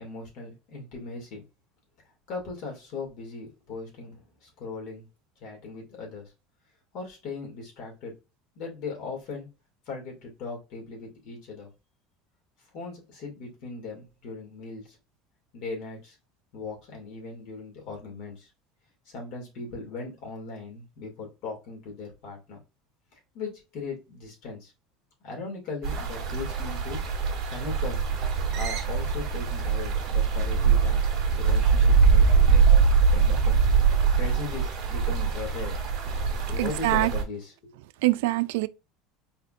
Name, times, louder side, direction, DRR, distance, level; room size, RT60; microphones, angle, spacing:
voice 1, 0.0-1.4 2.3-5.1 5.4-6.3 6.9-8.1 8.6-9.5 9.9-11.7 12.7-15.0 15.5-16.2 16.5-18.5 19.1-22.6 23.3-24.7 25.2-27.0 27.5-28.1 28.5-31.0 31.4-32.7 33.1-33.6 34.2-35.8 36.4-37.7, left 4 dB, 50° left, 2.4 m, -38 dB
sound 1, 25.8-37.2, right 5 dB, 30° right, 2.3 m, -23 dB
voice 2, 36.6-37.1 38.0-38.7, right 19 dB, 85° right, 0.3 m, -24 dB
4.3 x 4.2 x 2.5 m
cardioid pair, 170°, 0 cm